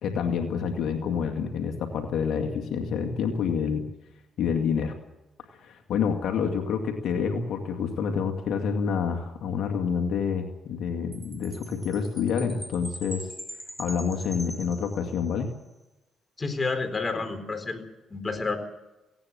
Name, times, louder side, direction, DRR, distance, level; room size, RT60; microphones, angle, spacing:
voice 1, 0.0-3.9 4.4-5.0 5.6-13.3 13.8-15.5, left 6 dB, 75° left, 4 dB, 2.2 m, -28 dB
Chime, 11.1-15.6, equal, 5° right, 2.8 m, -43 dB
voice 2, 16.4-17.8 18.1-18.6, left 3 dB, 30° left, 9 dB, 4.1 m, -29 dB
18.0 x 17.5 x 8.7 m, 1.0 s
cardioid pair, 75°, 0 cm